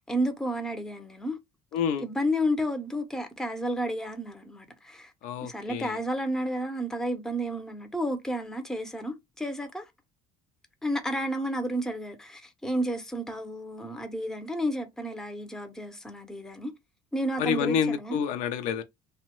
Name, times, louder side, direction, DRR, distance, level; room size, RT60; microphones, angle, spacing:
voice 1, 0.1-1.4 2.0-5.1 5.4-9.9 10.8-16.7 17.1-18.2, equal, 5° left, 0.6 m, -31 dB
voice 2, 1.7-2.1 5.2-6.0 17.4-18.8, left 7 dB, 70° left, 0.4 m, -28 dB
2.7 x 2.1 x 2.9 m
cardioid pair, 125°, 12 cm